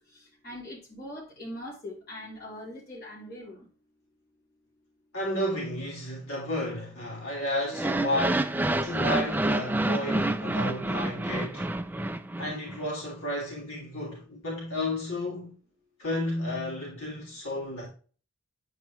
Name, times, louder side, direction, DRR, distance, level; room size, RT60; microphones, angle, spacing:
voice 1, 0.0-3.7, left 1 dB, 45° left, 3.4 m, -42 dB
voice 2, 5.1-8.5 8.8-11.6 12.4-15.5 16.0-17.9, left 1 dB, 70° left, 3.4 m, -32 dB
sound 1, 7.7-12.9, right 1 dB, 10° right, 0.3 m, -28 dB
8.9 x 4.7 x 3.1 m
head